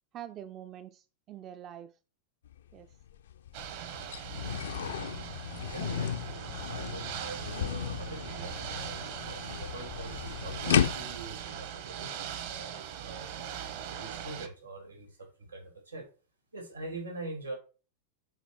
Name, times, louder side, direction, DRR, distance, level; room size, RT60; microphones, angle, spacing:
voice 1, 0.1-2.0 2.7-3.0 5.8-6.4 13.7-13.8, right 11 dB, 30° right, 11 dB, 0.4 m, -46 dB
sound 1, 2.5-2.6 3.0-11.3, left 9 dB, 60° left, 0.4 m, -34 dB
Ocean / Boat Water vehicle, 3.5-14.5, right 9 dB, 50° right, 1.0 m, -40 dB
voice 2, 5.6-13.3 13.9-16.1 16.5-17.5, right 2 dB, 85° right, 2 dB, 2.6 m, -44 dB
8.0 x 4.3 x 4.5 m, 0.35 s
figure-of-eight pair, 90°, 0 cm